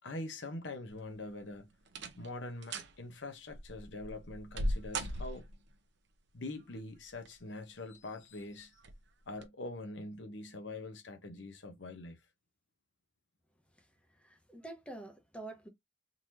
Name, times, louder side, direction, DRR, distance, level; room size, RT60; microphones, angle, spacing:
voice 1, 0.0-1.7 2.2-5.5 6.3-8.8 9.3-12.2, left 2 dB, 75° left, 0.9 m, -44 dB
sound 1, 0.9-1.4 1.9-2.3 2.6-2.9 3.5-5.7 6.9-7.5 7.9-8.0 8.8-9.0 9.4-9.5, right 1 dB, 70° right, 0.8 m, -38 dB
voice 2, 14.2-15.7, right 2 dB, 5° left, 1.0 m, -47 dB
3.9 x 3.0 x 2.7 m
head